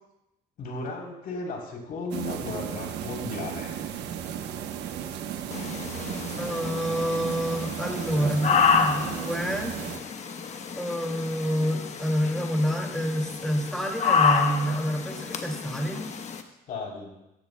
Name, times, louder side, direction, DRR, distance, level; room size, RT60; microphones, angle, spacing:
voice 1, 0.6-3.8 7.8-8.4 16.7-17.1, left 3 dB, 60° left, 0 dB, 3.6 m, -35 dB
sound 1, 2.1-10.0, right 9 dB, 80° right, 1.1 m, -35 dB
sound 2, 5.5-16.4, left 6 dB, 45° left, 1.1 m, -29 dB
voice 2, 6.4-9.8 10.7-16.1, equal, 5° left, 1 dB, 2.3 m, -28 dB
16.5 x 15.0 x 2.3 m, 0.91 s
cardioid pair, 110°, 17 cm